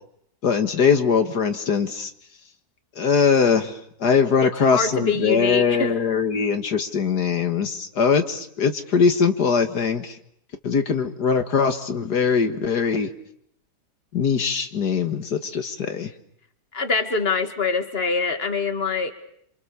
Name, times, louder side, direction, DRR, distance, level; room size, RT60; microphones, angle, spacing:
voice 1, 0.4-2.1 3.0-10.2 10.6-13.1 14.1-16.1, left 6 dB, 75° left, 7 dB, 2.3 m, -21 dB
voice 2, 4.4-5.9 16.7-19.1, left 4 dB, 35° left, 7 dB, 2.5 m, -24 dB
28.5 x 28.0 x 7.1 m, 0.71 s
omnidirectional pair, 1.8 m